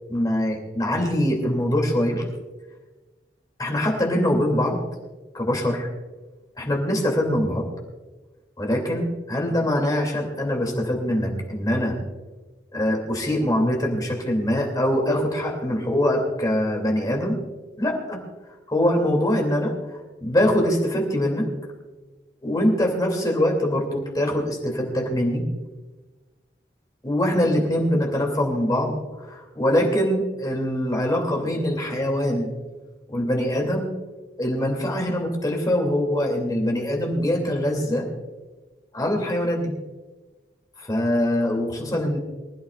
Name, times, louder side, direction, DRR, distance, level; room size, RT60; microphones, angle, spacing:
voice 1, 0.1-2.3 3.6-4.8 5.3-5.9 6.6-7.7 8.6-12.0 12.7-17.4 17.8-18.2 18.7-21.5 22.4-25.5 27.0-32.5 33.1-33.9 34.4-38.1 38.9-39.7 40.8-42.2, left 1 dB, 20° left, 0 dB, 2.7 m, -23 dB
24.0 x 13.5 x 2.5 m, 1.2 s
head